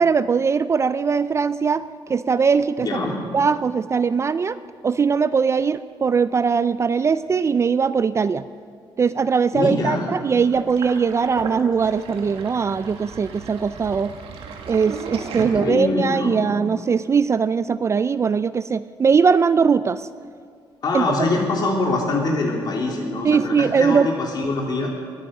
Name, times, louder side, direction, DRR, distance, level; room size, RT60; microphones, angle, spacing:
voice 1, 0.0-1.8 2.1-2.9 3.3-4.6 4.8-8.4 9.0-14.1 14.7-20.1 20.9-21.0 23.2-24.1, right 5 dB, 30° right, 14 dB, 0.4 m, -20 dB
voice 2, 2.8-3.2 9.5-10.1 15.4-16.4 20.8-24.9, left 2 dB, 50° left, 0 dB, 3.3 m, -24 dB
Sink (filling or washing), 10.5-16.1, right 6 dB, 90° right, 1.7 m, -36 dB
21.0 x 9.9 x 6.5 m, 2.2 s
cardioid pair, 125°, 9 cm